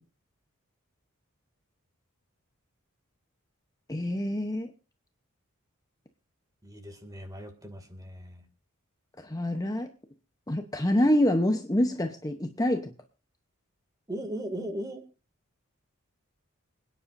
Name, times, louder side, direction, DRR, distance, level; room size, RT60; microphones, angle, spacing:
voice 1, 3.9-4.7 9.2-9.9 10.5-12.9, left 1 dB, 15° left, 5 dB, 0.8 m, -26 dB
voice 2, 6.6-8.4 14.1-15.0, right 1 dB, 15° right, 6 dB, 2.3 m, -38 dB
26.5 x 9.9 x 2.6 m, 0.33 s
head